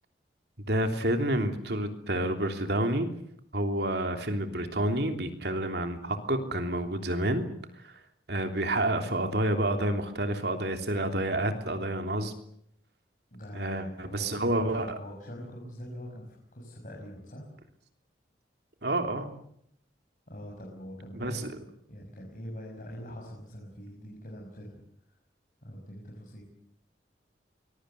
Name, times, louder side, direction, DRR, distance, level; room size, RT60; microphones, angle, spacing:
voice 1, 0.7-3.1 3.5-7.5 7.8-7.9 8.3-12.3 13.5-15.0 18.8-19.3 21.2-21.5, right 1 dB, 60° right, 6 dB, 3.3 m, -29 dB
voice 2, 13.3-17.4 20.3-21.6 21.9-24.8 25.6-26.4, equal, 45° left, -2 dB, 6.3 m, -44 dB
24.5 x 22.0 x 8.2 m, 0.71 s
head